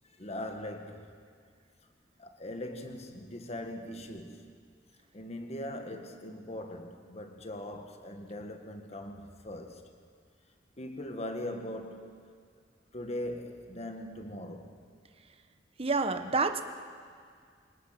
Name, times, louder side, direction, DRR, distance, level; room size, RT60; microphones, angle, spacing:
voice 1, 0.0-1.1 2.2-4.5 5.1-9.8 10.8-12.3 12.9-14.8, left 1 dB, 35° left, 1.6 m, -40 dB
voice 2, 15.8-16.6, right 4 dB, 35° right, 1.1 m, -28 dB
27.5 x 18.5 x 5.9 m
head